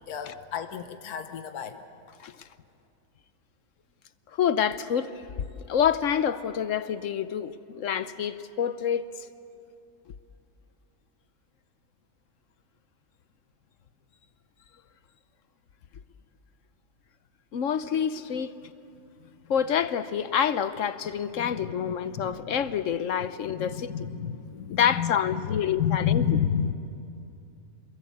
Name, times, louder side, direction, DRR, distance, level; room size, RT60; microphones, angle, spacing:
voice 1, 0.1-1.8 19.2-19.3 21.3-22.6 23.5-26.7, left 8 dB, 75° left, 1.5 m, -30 dB
voice 2, 4.4-5.1 5.7-9.1 17.5-18.5 19.5-23.9 24.7-26.2, left 8 dB, 60° left, 1.0 m, -27 dB
28.0 x 21.5 x 8.5 m
omnidirectional pair, 1.6 m